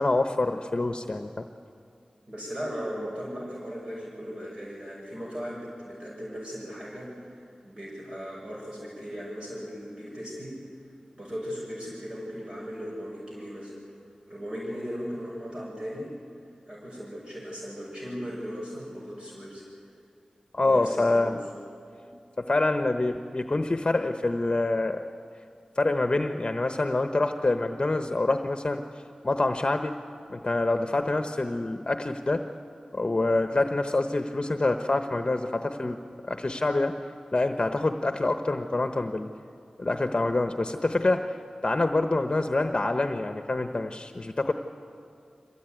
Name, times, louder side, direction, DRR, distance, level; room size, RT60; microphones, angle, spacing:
voice 1, 0.0-1.5 20.5-21.4 22.4-25.1 25.8-28.8 29.2-30.0 30.3-32.4 32.9-36.0 36.2-36.9 37.3-39.3 39.8-41.3 41.6-44.5, left 2 dB, 45° left, 7 dB, 1.0 m, -26 dB
voice 2, 2.3-10.6 11.2-13.8 14.3-16.1 16.7-19.6 20.6-21.4 22.0-22.1, equal, 45° right, -4 dB, 6.2 m, -37 dB
23.5 x 17.0 x 9.3 m, 2.4 s
cardioid pair, 45°, 2 cm